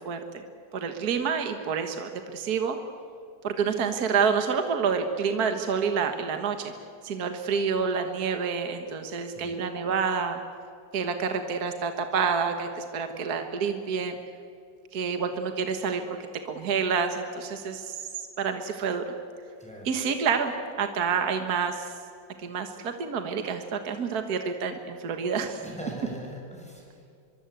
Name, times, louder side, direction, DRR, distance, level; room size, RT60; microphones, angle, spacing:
voice 1, 0.1-0.4 0.7-2.8 3.4-6.7 7.0-10.4 10.9-14.2 14.9-16.0 16.5-18.1 18.4-19.0 19.9-20.5 20.8-21.9 22.4-25.6, right 6 dB, 55° right, 6 dB, 1.8 m, -28 dB
voice 2, 19.6-19.9 25.6-27.1, equal, 5° left, -1 dB, 5.8 m, -41 dB
24.5 x 24.0 x 8.2 m, 2.4 s
omnidirectional pair, 2.0 m